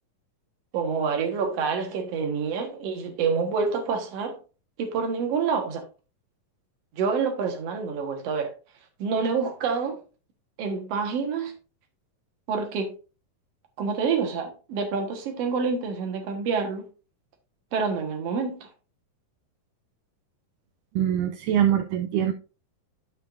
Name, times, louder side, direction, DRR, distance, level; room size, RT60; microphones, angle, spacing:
voice 1, 0.7-4.4 4.8-5.8 6.9-8.5 9.0-10.0 10.6-11.5 12.5-12.9 13.8-16.8 17.7-18.7, right 5 dB, 55° right, 2.2 m, -27 dB
voice 2, 21.0-22.3, right 10 dB, 80° right, 1.9 m, -23 dB
12.0 x 5.5 x 2.6 m
omnidirectional pair, 4.0 m